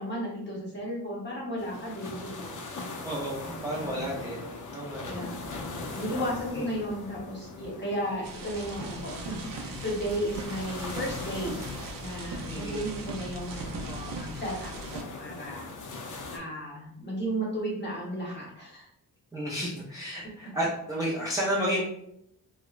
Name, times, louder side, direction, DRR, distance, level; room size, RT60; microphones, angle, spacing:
voice 1, 0.0-2.7 3.4-3.7 4.0-4.1 5.0-16.0 16.3-18.9, equal, 30° left, -3 dB, 0.8 m, -35 dB
sound 1, 1.6-16.4, left 3 dB, 55° left, 0.5 m, -41 dB
voice 2, 3.0-5.3 6.5-6.6 12.5-13.0 19.3-21.8, equal, 10° right, -6 dB, 0.4 m, -32 dB
sound 2, 8.2-15.0, right 2 dB, 65° right, 0.5 m, -39 dB
2.9 x 2.1 x 2.3 m, 0.75 s
wide cardioid pair, 140°, 37 cm